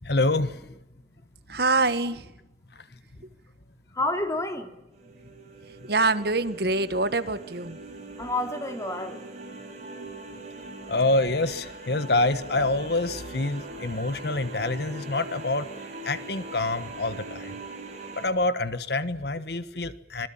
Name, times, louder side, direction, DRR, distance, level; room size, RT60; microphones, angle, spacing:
voice 1, 0.0-0.6 2.7-2.9 10.9-15.7 16.0-17.6 18.2-20.3, left 2 dB, 60° left, 13 dB, 1.3 m, -26 dB
voice 2, 1.5-2.3 5.8-7.8, right 3 dB, 55° right, 12 dB, 1.6 m, -25 dB
voice 3, 3.9-5.2 8.1-9.3 9.8-10.0 10.2-10.4, left 2 dB, 15° left, 6 dB, 3.1 m, -31 dB
sound 1, 4.9-18.3, right 2 dB, 40° right, 7.9 m, -41 dB
26.0 x 20.5 x 8.9 m, 0.89 s
head